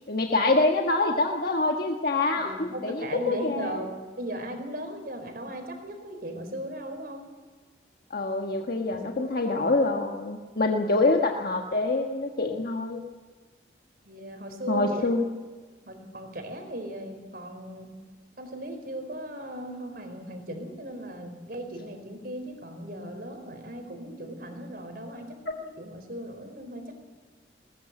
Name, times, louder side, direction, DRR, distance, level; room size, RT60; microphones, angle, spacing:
voice 1, 0.1-3.8 8.1-13.0 14.7-15.3, left 2 dB, 55° left, 1 dB, 1.5 m, -25 dB
voice 2, 2.3-3.9 4.2-7.2 8.9-9.4 10.8-10.9 14.0-15.2 15.9-17.9 18.4-26.9, right 1 dB, 50° right, 5 dB, 4.7 m, -37 dB
21.0 x 20.0 x 7.7 m, 1.4 s
head